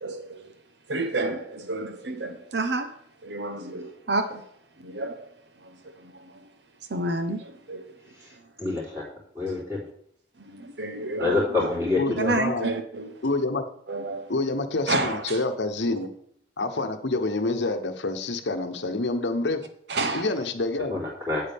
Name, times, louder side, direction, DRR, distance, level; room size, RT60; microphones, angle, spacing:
voice 1, 0.0-0.4 0.9-2.9 3.2-4.4 4.8-5.3 5.6-6.3 6.9-7.9 10.5-11.8 12.2-13.2 13.9-14.3 14.9-15.4 19.9-20.3, right 2 dB, 70° right, 8 dB, 0.9 m, -30 dB
voice 2, 8.6-9.0 9.4-9.8 11.2-12.0 12.2-12.3 20.9-21.4, left 3 dB, 15° right, -5 dB, 3.9 m, -26 dB
voice 3, 11.9-12.7 13.2-13.7 14.3-16.1 16.6-19.7 20.1-21.0, left 2 dB, 85° left, 8 dB, 0.9 m, -27 dB
8.7 x 8.4 x 3.5 m, 0.66 s
head